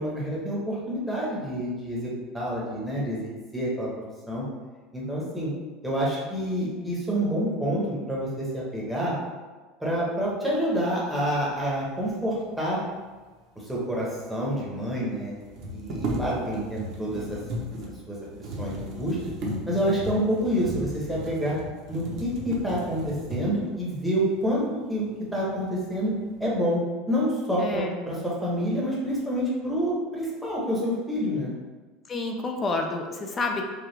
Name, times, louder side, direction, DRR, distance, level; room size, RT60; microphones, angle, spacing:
voice 1, 0.0-3.9 4.3-4.4 4.9-5.5 5.8-9.1 9.8-12.8 13.6-15.3 15.7-17.4 18.1-18.2 18.6-19.2 19.7-21.6 21.9-24.6 24.9-26.1 26.4-26.8 27.1-31.5, equal, ahead, -6 dB, 1.0 m, -28 dB
sound 1, 13.9-14.0 14.2-14.3 15.4-23.7 24.4-24.5 25.0-25.6 26.0-26.5, right 1 dB, 45° right, 0.8 m, -35 dB
voice 2, 27.6-27.9 32.1-33.6, left 3 dB, 20° left, 3 dB, 0.4 m, -29 dB
4.7 x 2.4 x 3.2 m, 1.3 s
supercardioid pair, 155°, 0 cm